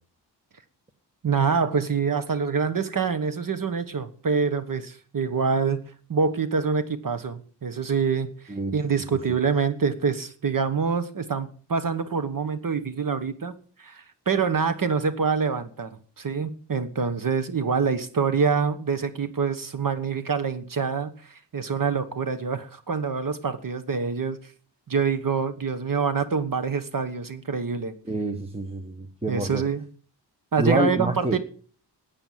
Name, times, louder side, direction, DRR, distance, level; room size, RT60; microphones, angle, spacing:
voice 1, 1.2-5.8 6.1-13.5 13.8-15.9 16.2-24.4 24.9-27.9 29.3-29.8 30.5-31.4, right 5 dB, 50° right, 11 dB, 1.3 m, -26 dB
voice 2, 28.1-29.6 30.6-31.4, right 2 dB, 15° right, 6 dB, 1.3 m, -27 dB
14.0 x 8.9 x 7.3 m, 0.43 s
wide cardioid pair, 140°, 42 cm